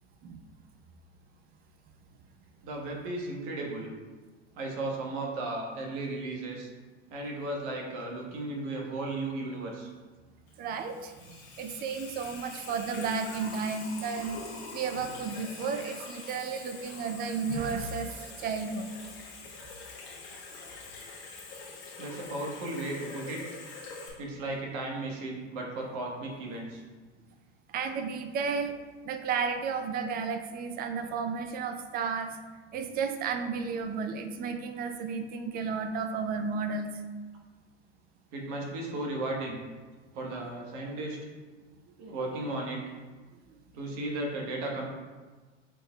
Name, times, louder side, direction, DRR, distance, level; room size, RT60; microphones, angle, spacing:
voice 1, 2.6-3.9 4.5-6.7 7.1-9.9 22.0-23.4 24.2-26.8 38.3-39.6 40.1-41.2 42.0-42.8 43.7-44.9, right 2 dB, 50° right, -1 dB, 1.2 m, -35 dB
Water tap faucet / Sink (filling or washing), 10.5-24.1, left 4 dB, 55° left, 1.4 m, -45 dB
voice 2, 10.6-14.4 14.7-19.0 27.7-28.7 29.0-32.4 32.7-36.9 43.5-43.6, right 5 dB, 25° right, 7 dB, 0.4 m, -33 dB
5.9 x 3.5 x 2.2 m, 1.3 s
hypercardioid pair, 85°, 36 cm